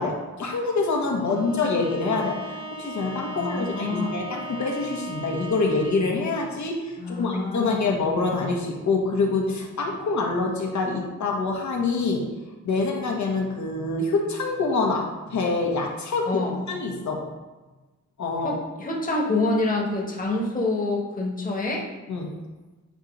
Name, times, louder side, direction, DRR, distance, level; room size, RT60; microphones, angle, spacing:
voice 1, 0.0-12.3 12.6-16.4 16.7-17.3 18.2-18.6 22.1-22.3, left 3 dB, 70° left, -1 dB, 1.1 m, -26 dB
Bowed string instrument, 1.2-6.1, right 1 dB, 15° right, 0.9 m, -38 dB
voice 2, 3.3-4.2 7.0-7.8 16.2-16.6 18.4-21.8, left 2 dB, 25° left, -2 dB, 1.2 m, -27 dB
8.9 x 3.0 x 5.1 m, 1.2 s
wide cardioid pair, 170°, 30 cm